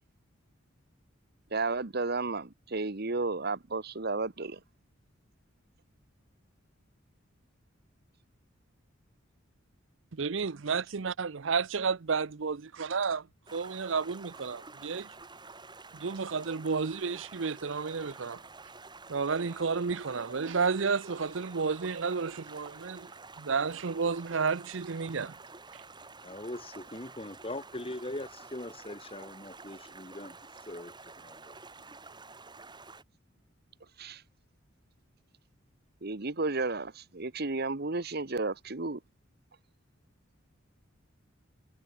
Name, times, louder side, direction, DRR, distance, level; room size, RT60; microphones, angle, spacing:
voice 1, 1.5-4.6 34.0-34.2 36.0-39.0, right 3 dB, 50° right, 1.3 m, -32 dB
voice 2, 10.1-13.3 13.5-15.1 15.9-18.4 19.1-23.1 23.4-25.3 25.7-25.8, right 5 dB, 65° right, 0.7 m, -31 dB
Stream, 13.5-33.0, right 3 dB, 20° right, 5.8 m, -50 dB
voice 3, 26.2-30.4 30.7-31.6, left 1 dB, 30° left, 2.4 m, -41 dB
head